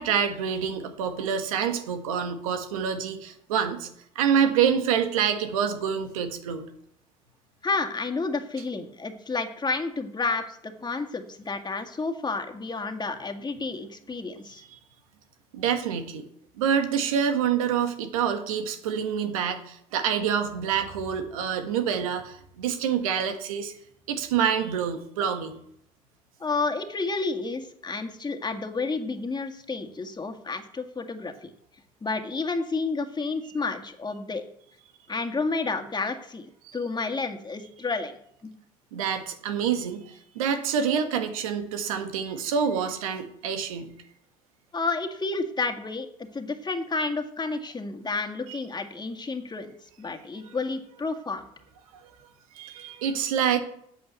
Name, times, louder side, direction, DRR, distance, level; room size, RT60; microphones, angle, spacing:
voice 1, 0.0-3.9 4.1-6.6 14.7-14.8 15.5-16.3 16.6-23.7 24.1-25.6 36.6-36.8 38.9-43.9 50.4-50.5 52.5-53.6, right 7 dB, 90° right, 6 dB, 1.5 m, -27 dB
voice 2, 7.6-14.6 26.4-31.5 32.0-34.4 35.1-38.1 38.4-38.5 44.7-46.1 46.3-49.7 50.0-51.4, left 3 dB, 25° left, 5 dB, 1.9 m, -30 dB
8.5 x 8.5 x 8.1 m, 0.69 s
hypercardioid pair, 70°, 17 cm